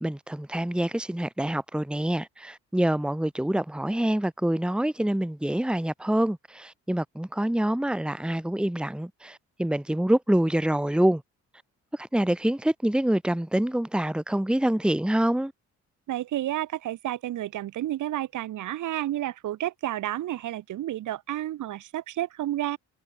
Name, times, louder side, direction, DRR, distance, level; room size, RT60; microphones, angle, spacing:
voice 1, 0.0-11.2 11.9-15.5, right 1 dB, 5° right, 1.6 m, -26 dB
voice 2, 16.1-22.8, right 13 dB, 80° right, 4.7 m, -31 dB
cardioid pair, 90°, 30 cm